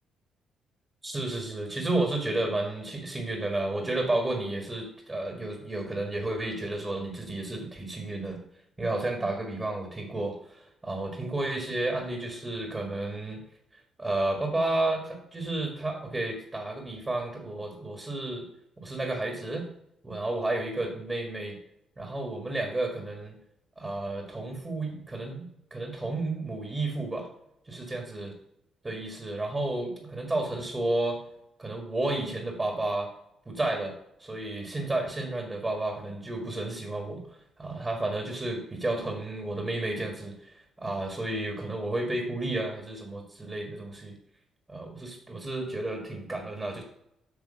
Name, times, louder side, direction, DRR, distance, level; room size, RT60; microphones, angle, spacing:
voice 1, 1.0-8.4 8.8-13.4 14.0-18.5 18.8-19.6 20.0-21.6 22.0-23.4 23.8-27.3 27.7-28.3 28.8-31.2 31.6-33.1 33.4-37.2 37.6-44.2 44.7-46.8, right 2 dB, 20° right, 2 dB, 1.6 m, -32 dB
8.3 x 3.3 x 6.4 m, 0.79 s
cardioid pair, 90°, 0 cm